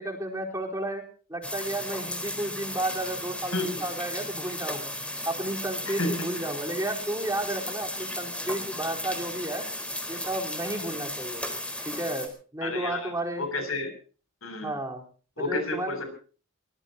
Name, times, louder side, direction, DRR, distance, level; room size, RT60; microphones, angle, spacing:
voice 1, 0.0-4.9 5.3-9.7 10.1-11.5 11.8-13.5 14.6-15.0 15.4-16.0, right 1 dB, 15° right, 1 dB, 4.2 m, -32 dB
sound 1, 1.4-12.3, left 1 dB, 5° left, 4.4 m, -35 dB
voice 2, 12.6-13.9 14.4-14.7 15.4-16.0, left 2 dB, 75° left, 7 dB, 7.2 m, -31 dB
24.0 x 20.5 x 2.9 m, 0.39 s
head